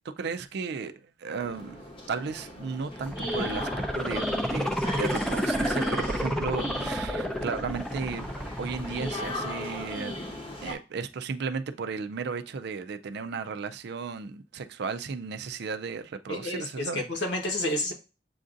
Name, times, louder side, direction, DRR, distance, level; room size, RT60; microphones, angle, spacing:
voice 1, 0.0-0.9 1.2-8.3 8.6-10.2 10.6-17.2, right 5 dB, 60° right, 0.4 m, -34 dB
sound 1, 1.4-10.7, left 1 dB, 30° left, 0.9 m, -37 dB
sound 2, 3.0-10.0 10.3-10.4, equal, 5° left, 0.5 m, -31 dB
voice 2, 16.3-17.9, left 1 dB, 65° left, 1.2 m, -30 dB
7.6 x 2.6 x 2.5 m
head